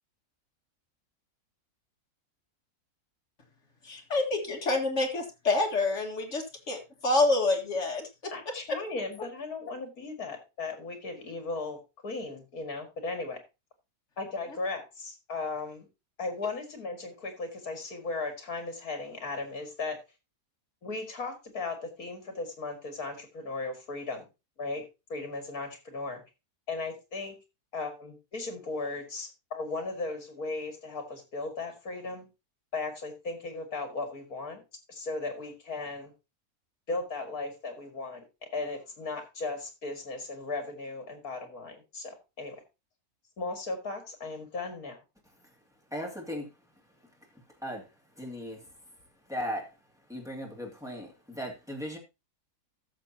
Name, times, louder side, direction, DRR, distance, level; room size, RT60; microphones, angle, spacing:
voice 1, 3.8-8.3, left 2 dB, 50° left, 3 dB, 2.0 m, -27 dB
voice 2, 8.3-13.4 14.2-15.9 16.2-20.0 20.8-24.3 24.6-24.8 25.1-26.2 26.7-27.4 27.7-32.3 32.7-34.6 34.9-36.1 36.9-38.2 38.5-42.6 43.4-45.0, left 3 dB, 70° left, 6 dB, 2.6 m, -36 dB
voice 3, 45.9-46.5 47.6-47.8 48.2-48.7 49.3-49.7 50.1-52.0, equal, ahead, 0 dB, 2.3 m, -37 dB
14.5 x 6.7 x 2.8 m, 0.26 s
omnidirectional pair, 1.6 m